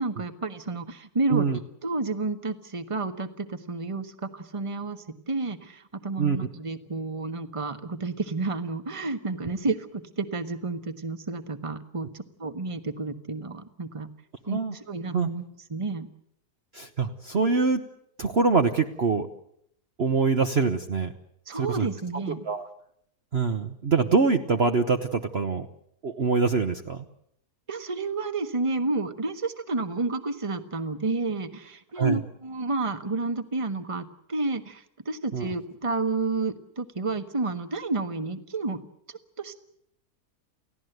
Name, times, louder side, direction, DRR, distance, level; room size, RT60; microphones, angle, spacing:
voice 1, 0.0-1.5 1.8-14.1 14.5-15.4 15.7-16.1 21.5-22.4 27.7-38.8 39.1-39.6, right 3 dB, 20° right, 8 dB, 1.3 m, -30 dB
voice 2, 16.7-17.8 18.2-19.3 20.0-21.1 21.5-21.9 22.4-22.7 23.3-25.7 26.0-27.1 31.9-32.2 35.3-35.5, right 4 dB, 45° right, 5 dB, 1.2 m, -24 dB
29.5 x 17.0 x 8.0 m, 0.74 s
omnidirectional pair, 1.7 m